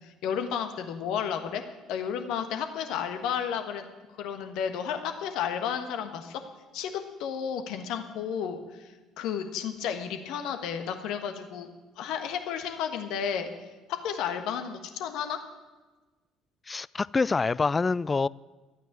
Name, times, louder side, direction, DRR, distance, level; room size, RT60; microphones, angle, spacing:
voice 1, 0.0-1.6 1.9-3.9 4.2-6.4 6.7-11.7 12.0-13.5 13.9-15.4, left 8 dB, 65° left, 7 dB, 1.3 m, -32 dB
voice 2, 16.7-18.3, left 4 dB, 30° left, 22 dB, 0.3 m, -26 dB
12.5 x 9.1 x 8.7 m, 1.3 s
hypercardioid pair, 55°, 0 cm